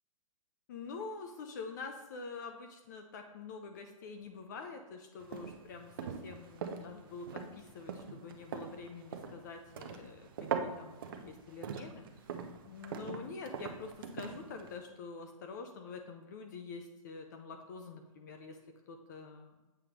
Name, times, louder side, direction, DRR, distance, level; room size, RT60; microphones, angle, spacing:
voice 1, 0.7-12.0 12.7-18.6 18.9-19.5, left 4 dB, 30° left, 5 dB, 0.5 m, -46 dB
sound 1, 5.2-14.8, right 6 dB, 40° right, 0.6 m, -42 dB
7.7 x 3.0 x 5.1 m, 1.1 s
hypercardioid pair, 165°, 18 cm